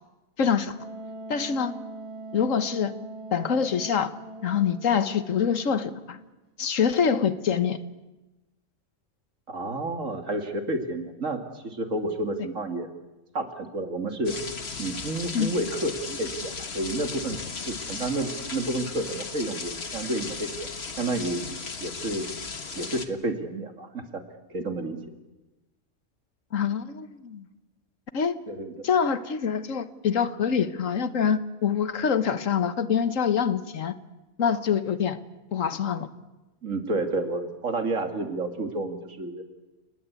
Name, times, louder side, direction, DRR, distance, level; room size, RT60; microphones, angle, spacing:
voice 1, 0.4-0.8 1.3-1.7 2.3-2.9 3.3-4.1 4.4-6.2 6.6-7.8 15.3-15.5 26.5-27.5 28.1-28.4 28.8-34.0 34.4-35.2 35.5-36.1, left 7 dB, 80° left, 12 dB, 1.6 m, -25 dB
Wind instrument woodwind instrument, 0.8-6.3, right 2 dB, 25° right, 1.2 m, -42 dB
voice 2, 9.5-12.9 13.3-14.4 14.8-17.4 17.7-20.7 21.0-21.4 21.8-22.3 22.8-24.2 24.5-25.0 28.5-28.7 36.6-39.4, right 2 dB, 80° right, 6 dB, 2.8 m, -30 dB
sound 1, 14.3-23.1, left 4 dB, 55° left, 1.8 m, -36 dB
29.5 x 19.5 x 8.4 m, 1.1 s
omnidirectional pair, 1.3 m